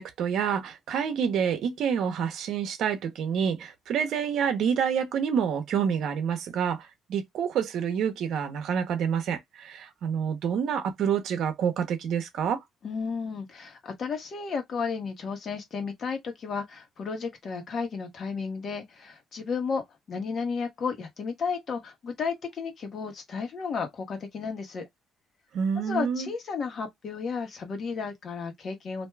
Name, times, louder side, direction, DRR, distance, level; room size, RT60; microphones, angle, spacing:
voice 1, 0.0-12.6 25.5-26.3, right 7 dB, 80° right, 0.7 m, -28 dB
voice 2, 12.8-24.9 25.8-29.1, left 5 dB, 55° left, 1.1 m, -33 dB
2.6 x 2.3 x 3.2 m
cardioid pair, 90°, 0 cm